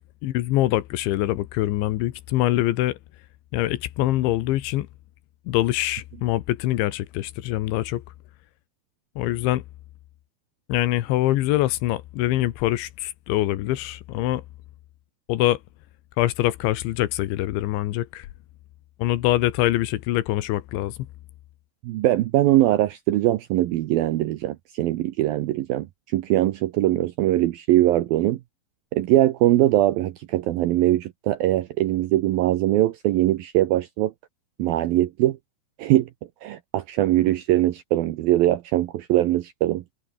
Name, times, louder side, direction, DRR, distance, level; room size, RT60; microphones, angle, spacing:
voice 1, 0.2-3.0 3.5-4.9 5.5-8.0 9.2-9.6 10.7-14.4 15.3-15.6 16.2-18.3 19.0-21.0, left 15 dB, 80° left, 3.5 m, -24 dB
voice 2, 21.8-25.9 26.1-28.4 28.9-34.1 34.6-35.4 35.8-36.1 36.4-39.8, right 14 dB, 75° right, 2.2 m, -21 dB
omnidirectional pair, 5.3 m